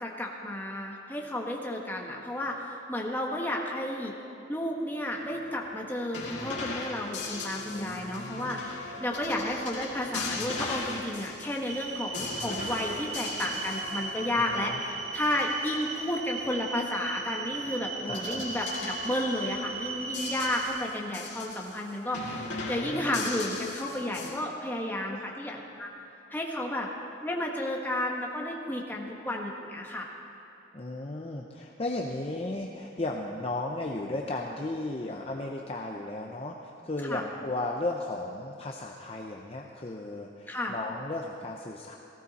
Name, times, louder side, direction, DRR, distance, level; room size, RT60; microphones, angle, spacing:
voice 1, 0.0-4.1 4.5-25.9 26.3-26.9 27.2-30.1 37.0-37.2 40.5-40.7, left 1 dB, 10° left, -1 dB, 1.4 m, -32 dB
sound 1, 5.1-16.0 17.2-21.8 22.1-24.3, left 3 dB, 70° left, 2.3 m, -39 dB
voice 2, 7.7-8.7 14.3-14.8 18.1-18.5 19.9-20.1 22.5-23.3 25.1-25.2 30.7-42.0, left 2 dB, 30° left, 0 dB, 0.7 m, -35 dB
sound 2, 11.6-20.7, right 4 dB, 55° right, 2.5 m, -37 dB
18.0 x 15.0 x 4.2 m, 3.0 s
head